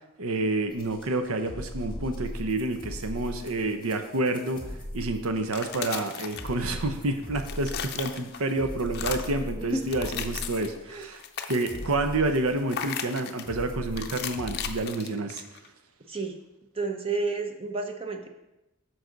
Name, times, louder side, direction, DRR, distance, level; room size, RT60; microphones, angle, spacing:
voice 1, 0.2-4.6 4.9-11.2 11.5-15.4, right 2 dB, 80° right, 7 dB, 0.8 m, -29 dB
sound 1, 0.7-14.8, left 1 dB, 20° left, 1.2 m, -39 dB
sound 2, 5.4-6.9 7.2-8.5 8.9-9.4 9.8-10.8 11.1-11.9 12.7-13.5 14.0-15.7, left 8 dB, 45° left, 0.5 m, -36 dB
voice 2, 16.1-16.4 16.8-18.3, right 4 dB, 25° right, 5 dB, 0.7 m, -31 dB
9.6 x 6.4 x 3.9 m, 0.96 s
head